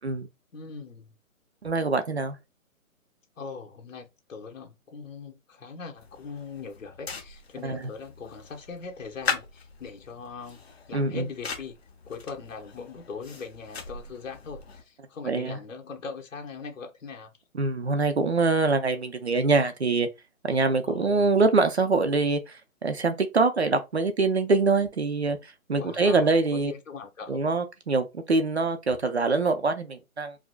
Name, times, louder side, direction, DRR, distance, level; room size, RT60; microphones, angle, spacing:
voice 1, 0.5-1.2 3.4-10.6 10.9-11.8 12.1-17.3 20.8-21.3 25.8-27.4, left 5 dB, 60° left, 1.1 m, -41 dB
voice 2, 1.6-2.4 7.6-7.8 10.9-11.3 15.2-15.6 17.5-20.1 20.4-26.7 27.3-30.4, right 3 dB, 50° right, 0.5 m, -24 dB
sound 1, 6.0-14.8, left 5 dB, 45° left, 0.8 m, -39 dB
4.7 x 2.1 x 2.2 m
hypercardioid pair, 180°, 42 cm